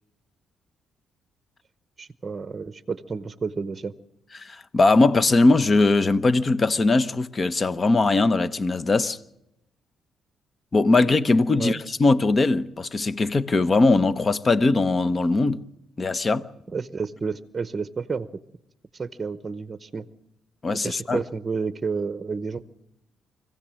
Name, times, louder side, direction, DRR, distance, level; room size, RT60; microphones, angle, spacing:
voice 1, 2.0-3.9 11.6-11.8 16.7-18.3 18.9-20.1 20.8-22.6, right 5 dB, 30° right, 0.8 m, -30 dB
voice 2, 4.3-9.2 10.7-15.6 16.0-16.5 20.6-21.2, left 3 dB, 35° left, 0.8 m, -20 dB
25.0 x 16.0 x 7.5 m
cardioid pair, 90°, 0 cm